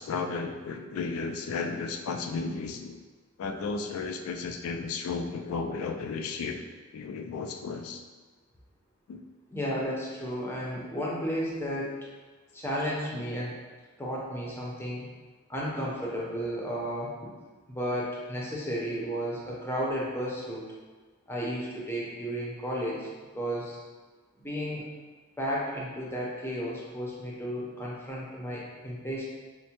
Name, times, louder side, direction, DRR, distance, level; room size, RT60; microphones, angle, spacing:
voice 1, 0.0-3.0 3.4-6.6 6.9-8.0 9.1-9.2, left 4 dB, 90° left, 5 dB, 0.3 m, -34 dB
voice 2, 9.5-12.0 12.5-13.5 14.0-15.1 15.5-17.3 17.7-20.6 21.3-23.1 23.3-23.8 24.4-24.8 25.4-29.2, equal, 10° left, -5 dB, 0.6 m, -33 dB
4.5 x 2.1 x 2.8 m, 1.3 s
head